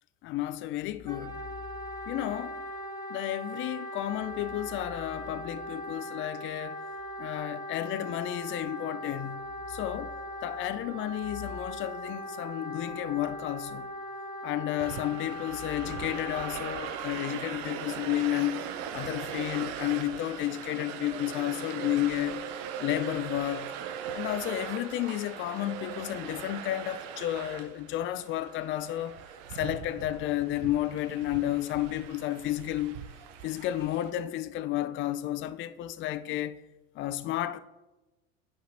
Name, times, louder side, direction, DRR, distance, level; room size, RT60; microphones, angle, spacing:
voice 1, 0.2-1.4 2.1-2.6 3.1-6.8 7.2-10.1 10.4-13.9 14.4-18.6 18.9-22.4 22.8-23.7 24.1-29.2 29.5-33.0 33.4-36.6 37.0-37.6, left 14 dB, 30° left, 0.3 m, -32 dB
Wind instrument woodwind instrument, 1.1-16.9, equal, 10° left, 1.0 m, -40 dB
sound 1, 14.8-34.1, right 8 dB, 60° right, 0.7 m, -40 dB
9.1 x 5.8 x 2.6 m
hypercardioid pair, 75°, 42 cm